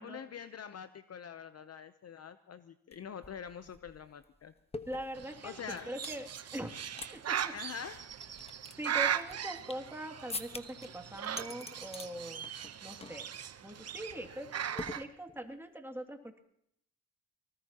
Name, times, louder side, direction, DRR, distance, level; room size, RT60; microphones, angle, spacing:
voice 1, 0.0-4.5 5.4-6.0 7.5-8.1, left 7 dB, 40° left, 12 dB, 0.8 m, -45 dB
sound 1, 2.9-3.0 3.2-6.2 6.6-7.1 7.4-7.5 8.0-9.9 10.3-10.9 11.2-12.1 12.4-12.7 13.0-13.3 13.6-13.8 14.8-15.5, left 3 dB, 15° left, 1.2 m, -45 dB
voice 2, 4.9-6.8 7.1-7.6 8.8-12.4 12.8-13.3 13.6-16.4, right 1 dB, 5° right, 4 dB, 2.5 m, -42 dB
Bird, 5.2-15.0, right 9 dB, 40° right, 0.9 m, -39 dB
23.5 x 19.5 x 2.9 m, 0.72 s
supercardioid pair, 65°, 37 cm